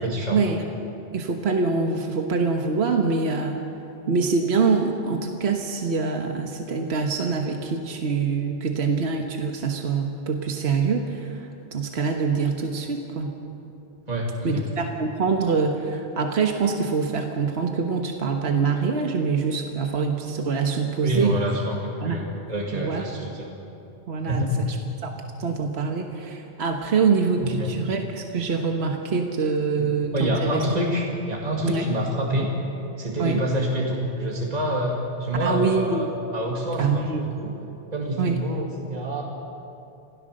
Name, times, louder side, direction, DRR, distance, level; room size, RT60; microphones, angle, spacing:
voice 1, 0.0-0.4 14.1-14.6 21.0-23.5 24.3-24.5 27.4-27.7 29.8-32.5 33.0-36.1 36.3-37.5 37.9-39.2, equal, 35° right, -2 dB, 2.2 m, -27 dB
voice 2, 1.1-3.6 4.1-13.4 14.4-21.3 22.0-22.2 22.7-23.1 24.1-24.7 25.0-25.1 25.4-30.6 31.6-31.9 33.2-33.4 35.4-36.1 36.8-37.2 38.2-38.4, right 5 dB, 65° right, 3 dB, 1.5 m, -25 dB
27.0 x 16.5 x 6.6 m, 2.8 s
omnidirectional pair, 1.2 m